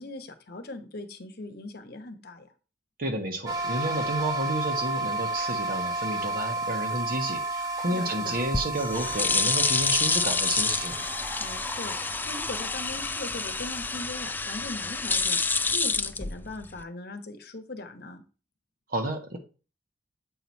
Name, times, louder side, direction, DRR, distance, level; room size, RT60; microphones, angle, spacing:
voice 1, 0.0-2.5 7.8-8.3 11.4-18.2, left 2 dB, 60° left, 7 dB, 1.0 m, -40 dB
voice 2, 3.0-10.9 18.9-19.4, right 1 dB, 55° right, 4 dB, 1.3 m, -31 dB
sound 1, 3.5-14.0, right 2 dB, 20° right, 1.2 m, -33 dB
sound 2, 8.4-16.8, left 4 dB, 10° left, 0.3 m, -28 dB
7.8 x 3.0 x 5.3 m, 0.34 s
head